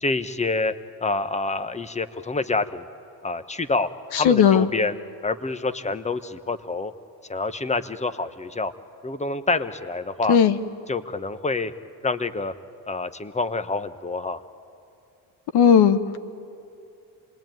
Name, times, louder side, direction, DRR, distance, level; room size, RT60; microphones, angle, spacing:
voice 1, 0.0-0.7 1.0-2.9 3.2-4.9 5.2-6.9 7.3-8.7 9.0-10.4 10.9-11.7 12.0-12.5 12.9-14.4, left 3 dB, 15° left, 11 dB, 1.1 m, -27 dB
voice 2, 4.1-4.7 10.3-10.6 15.5-16.2, left 8 dB, 60° left, 12 dB, 1.3 m, -16 dB
27.0 x 20.5 x 9.2 m, 2.8 s
supercardioid pair, 85°, 44 cm